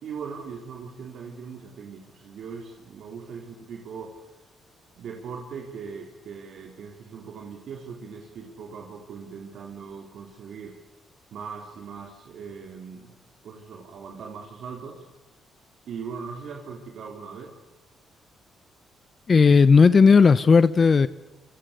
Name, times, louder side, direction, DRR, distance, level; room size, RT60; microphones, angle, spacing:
voice 1, 0.0-4.1 5.0-10.8 11.3-13.2 13.4-15.0 15.9-17.5, right 6 dB, 65° right, 1 dB, 3.6 m, -39 dB
voice 2, 19.3-21.1, left 5 dB, 40° left, 16 dB, 0.8 m, -15 dB
27.5 x 24.5 x 6.7 m, 1.2 s
cardioid pair, 90°, 0 cm